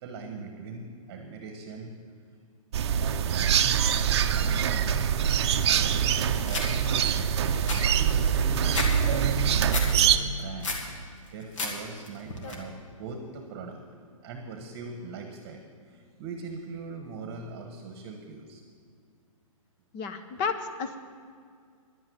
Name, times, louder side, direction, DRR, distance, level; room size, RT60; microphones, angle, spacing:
voice 1, 0.0-2.0 2.9-3.6 4.0-6.8 7.2-7.6 7.9-10.8 11.3-13.9 14.2-18.6, right 4 dB, 30° right, 4 dB, 1.2 m, -41 dB
sound 1, 2.7-10.2, right 8 dB, 50° right, 0.6 m, -24 dB
sound 2, 6.5-6.7 7.1-7.2 7.5-8.9 9.2-9.9 10.3-10.9 11.3-11.7 12.0-12.5, left 3 dB, 65° left, 2.5 m, -32 dB
voice 2, 19.9-21.0, left 5 dB, 25° left, 9 dB, 0.8 m, -32 dB
11.0 x 8.9 x 9.2 m, 2.1 s
hypercardioid pair, 155°, 18 cm